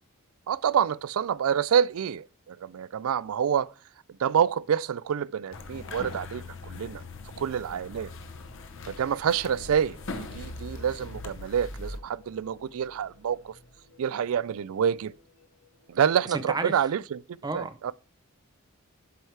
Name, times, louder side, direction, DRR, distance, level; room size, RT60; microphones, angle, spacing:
voice 1, 0.5-3.7 4.2-7.0 7.4-8.1 8.8-13.5 14.0-15.1 15.9-17.9, right 8 dB, 70° right, 0.3 m, -27 dB
sound 1, 5.5-12.0, left 3 dB, 60° left, 0.8 m, -40 dB
sound 2, 7.8-16.6, left 2 dB, 80° left, 1.6 m, -58 dB
voice 2, 16.3-16.7 17.4-17.7, right 3 dB, 20° right, 0.5 m, -31 dB
11.5 x 4.7 x 3.3 m
head